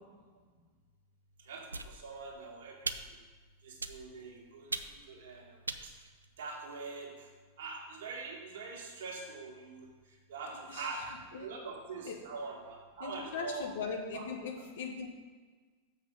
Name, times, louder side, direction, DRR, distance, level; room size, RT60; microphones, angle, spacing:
voice 1, 1.4-3.2 3.6-5.6 5.8-5.9 6.4-7.3 7.6-9.9 10.3-13.7 14.1-14.2, right 4 dB, 60° right, -1 dB, 1.9 m, -43 dB
sound 1, 1.7-2.3 2.8-3.3 3.8-4.3 4.7-5.2 5.7-6.8, right 3 dB, 80° right, 0.4 m, -41 dB
voice 2, 10.5-10.9 12.0-12.1 13.0-15.1, left 5 dB, 60° left, 2 dB, 1.3 m, -39 dB
7.2 x 5.9 x 5.4 m, 1.4 s
figure-of-eight pair, 90°, 0 cm